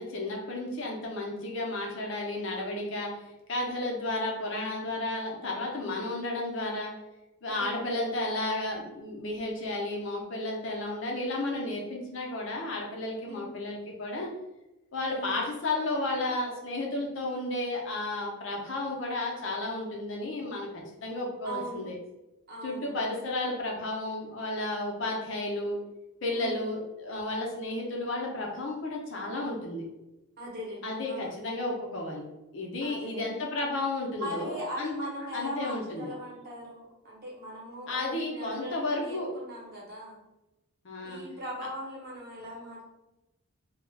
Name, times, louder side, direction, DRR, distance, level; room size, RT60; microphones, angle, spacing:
voice 1, 0.0-3.1 3.5-6.9 7.4-14.3 14.9-22.0 22.6-25.8 26.2-29.9 30.8-32.2 32.5-34.9 35.3-36.1 37.9-39.3 40.8-41.2, left 2 dB, 60° left, -1 dB, 0.5 m, -33 dB
voice 2, 7.5-7.9 13.3-13.5 15.1-15.4 21.4-21.9 22.5-23.0 26.3-26.7 30.4-31.5 32.8-33.4 34.2-40.2 41.0-42.9, equal, 45° right, -4 dB, 0.8 m, -40 dB
2.3 x 2.1 x 3.2 m, 0.97 s
head